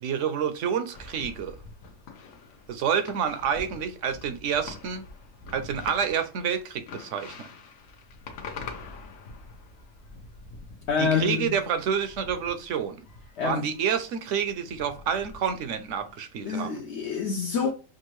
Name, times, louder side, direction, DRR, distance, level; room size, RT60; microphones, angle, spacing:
voice 1, 0.0-1.6 2.7-5.0 5.5-7.5 11.0-13.0 13.4-16.8, right 7 dB, 70° right, 0.9 m, -28 dB
Domestic fireworks display, 0.9-16.1, left 4 dB, 80° left, 1.2 m, -45 dB
voice 2, 10.9-11.6 13.4-13.7 16.4-17.7, left 5 dB, 65° left, 0.8 m, -27 dB
6.0 x 2.5 x 3.0 m
omnidirectional pair, 1.4 m